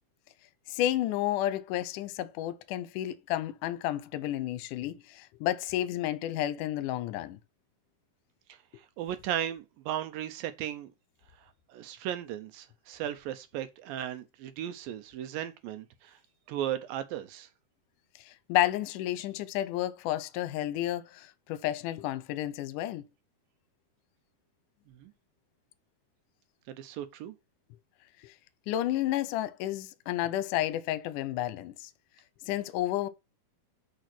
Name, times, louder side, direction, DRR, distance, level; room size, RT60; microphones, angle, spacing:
voice 1, 0.7-7.4 18.2-23.0 28.2-28.4 28.7-31.9 32.4-33.1, left 13 dB, 75° left, 2.1 m, -31 dB
voice 2, 8.5-10.9 11.7-16.2 16.5-17.5 25.0-25.1 26.7-27.3, right 11 dB, 80° right, 2.3 m, -36 dB
6.5 x 6.2 x 6.0 m
omnidirectional pair, 4.3 m